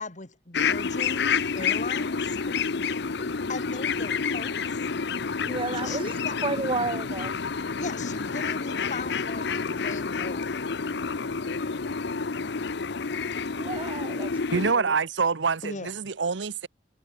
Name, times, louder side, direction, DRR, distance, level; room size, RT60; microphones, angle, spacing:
voice 1, 0.0-2.4 3.5-4.9 5.8-6.3 7.8-10.5 15.6-15.9, left 3 dB, 45° left, 2.6 m, -38 dB
sound 1, 0.5-14.7, left 5 dB, 65° left, 0.8 m, -29 dB
voice 2, 5.5-6.1 6.4-7.3 13.6-14.3 14.6-15.0, right 3 dB, 30° right, 1.3 m, -31 dB
voice 3, 14.5-16.7, right 5 dB, 80° right, 0.9 m, -26 dB
head